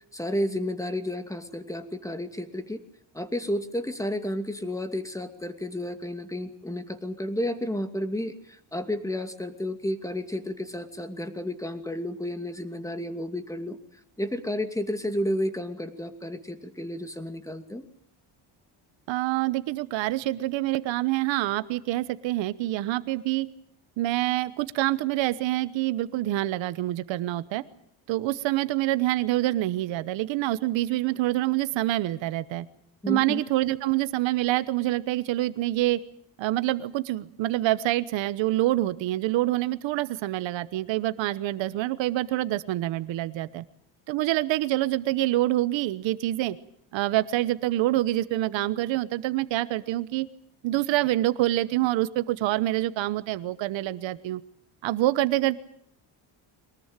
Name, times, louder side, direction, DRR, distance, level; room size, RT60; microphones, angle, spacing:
voice 1, 0.1-2.8 3.1-13.8 14.2-17.8 33.0-33.4, left 1 dB, 5° left, 2.5 m, -31 dB
voice 2, 19.1-23.5 24.0-27.6 28.1-32.6 33.1-36.0 36.4-43.6 44.1-46.6 46.9-50.3 50.6-54.4 54.8-55.6, right 16 dB, 90° right, 1.2 m, -26 dB
23.5 x 20.5 x 9.0 m
cardioid pair, 125°, 44 cm